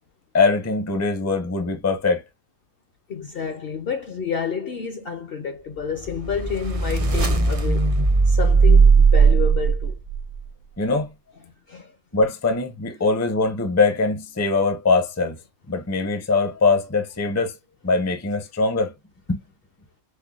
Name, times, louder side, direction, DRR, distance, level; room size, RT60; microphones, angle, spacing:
voice 1, 0.3-2.2 10.8-11.1 12.1-15.4 15.7-17.5 17.8-18.9 19.3-19.4, left 3 dB, 15° left, 0.5 m, -22 dB
voice 2, 3.1-7.9 8.3-10.0 11.7-11.9, left 6 dB, 55° left, 0.7 m, -29 dB
sound 1, 6.0-10.2, right 4 dB, 45° right, 0.4 m, -17 dB
5.5 x 2.1 x 2.3 m
omnidirectional pair, 1.5 m